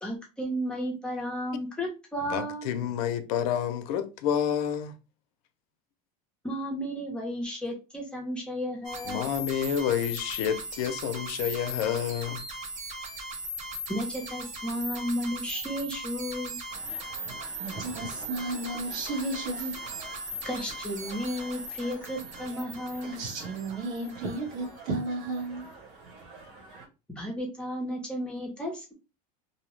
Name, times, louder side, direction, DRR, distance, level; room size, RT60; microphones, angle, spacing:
voice 1, 0.0-2.7 6.4-9.3 13.9-16.6 20.4-23.1 27.2-28.9, equal, 5° left, 0.6 m, -33 dB
voice 2, 2.3-4.9 9.1-12.4, left 9 dB, 75° left, 0.5 m, -29 dB
sound 1, 8.8-24.7, right 1 dB, 40° right, 0.7 m, -39 dB
sound 2, 16.7-26.9, right 3 dB, 55° right, 1.2 m, -49 dB
voice 3, 17.6-19.8 23.0-25.7, right 2 dB, 75° right, 1.2 m, -33 dB
2.7 x 2.0 x 3.0 m
cardioid pair, 165°, 19 cm